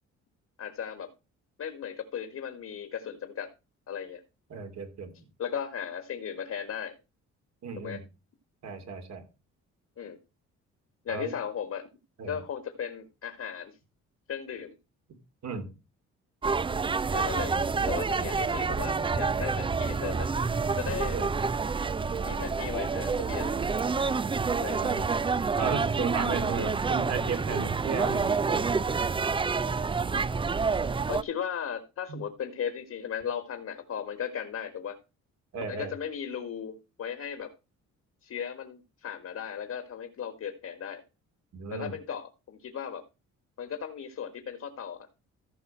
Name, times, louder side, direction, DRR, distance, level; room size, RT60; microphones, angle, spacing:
voice 1, 0.6-1.1 1.6-3.5 3.9-4.2 5.4-7.0 7.8-8.0 10.0-10.2 11.0-11.9 12.3-13.8 14.3-14.7 17.1-17.5 17.9-20.3 20.7-21.2 22.2-23.6 24.6-24.9 31.1-35.0 35.7-37.5 38.2-41.0 41.7-43.0 43.6-45.1, left 8 dB, 55° left, 8 dB, 1.6 m, -36 dB
voice 2, 4.5-5.1 7.6-8.0 8.6-9.2 11.1-11.3 12.2-12.4 15.4-15.7 20.9-21.3 24.7-25.1 25.6-28.9 32.1-32.2 35.5-35.9 41.5-41.9, right 5 dB, 60° right, 6 dB, 2.8 m, -35 dB
sound 1, 16.4-31.2, right 4 dB, 15° right, 0.4 m, -28 dB
14.5 x 5.4 x 4.3 m, 0.29 s
cardioid pair, 90°, 30 cm